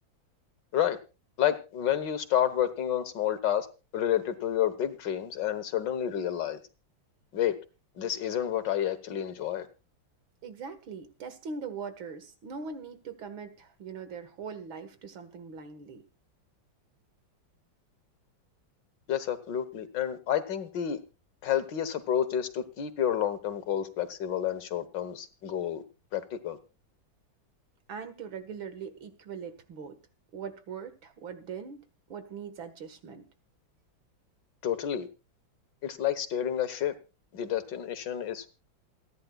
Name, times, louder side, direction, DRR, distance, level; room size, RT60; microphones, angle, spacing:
voice 1, 1.4-3.7 3.9-6.6 7.3-7.6 8.0-9.7 19.1-21.0 21.4-25.8 26.1-26.6 34.6-35.1 35.8-36.9 37.3-38.5, left 10 dB, 65° left, 1.8 m, -29 dB
voice 2, 10.4-16.0 27.9-30.0 30.3-31.8 32.1-33.3, right 6 dB, 90° right, 2.4 m, -41 dB
28.5 x 10.5 x 2.3 m
omnidirectional pair, 2.1 m